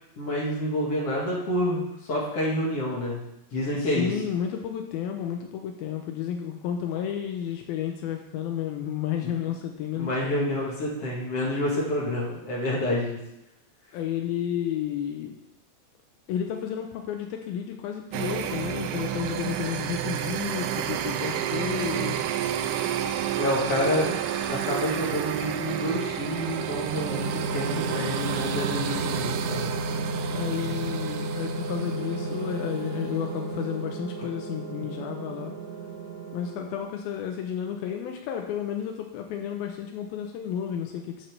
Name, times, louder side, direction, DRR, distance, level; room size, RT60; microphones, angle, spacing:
voice 1, 0.2-3.2 3.5-4.1 9.2-9.3 9.9-13.2 23.4-24.1 24.5-29.7, left 1 dB, 45° left, -4 dB, 2.5 m, -28 dB
voice 2, 3.8-10.6 13.9-15.4 16.3-22.2 23.8-24.2 30.3-35.6 36.3-41.3, left 9 dB, 80° left, 3 dB, 2.6 m, -32 dB
sound 1, 18.1-32.9, right 10 dB, 80° right, 2.0 m, -31 dB
sound 2, 27.1-36.8, right 2 dB, 60° right, 1.1 m, -33 dB
11.0 x 4.5 x 6.7 m, 0.88 s
omnidirectional pair, 4.3 m